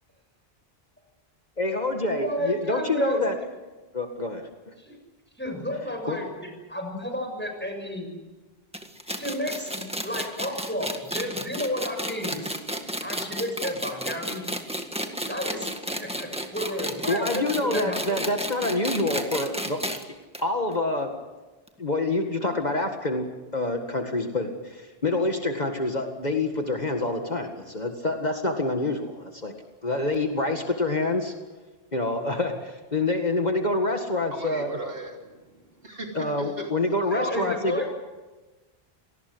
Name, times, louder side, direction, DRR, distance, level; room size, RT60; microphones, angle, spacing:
voice 1, 1.6-3.3 3.9-4.5 6.1-6.2 17.1-19.8 20.4-21.1 21.8-23.3 23.5-29.5 29.8-31.3 31.9-34.8 36.2-37.8, left 2 dB, 45° left, 4 dB, 2.1 m, -27 dB
voice 2, 2.1-3.4 4.8-4.9 5.4-8.1 9.1-12.6 13.0-14.4 15.3-15.7 16.0-18.0 37.1-37.8, left 1 dB, 10° left, 2 dB, 6.7 m, -32 dB
sound 1, 8.7-20.0 20.3-20.4 20.7-20.8 21.7-21.8, equal, 5° right, 1.8 m, -32 dB
voice 3, 34.3-36.7 37.0-37.1, right 1 dB, 65° right, 1 dB, 3.6 m, -39 dB
27.0 x 19.0 x 8.0 m, 1.2 s
omnidirectional pair, 1.0 m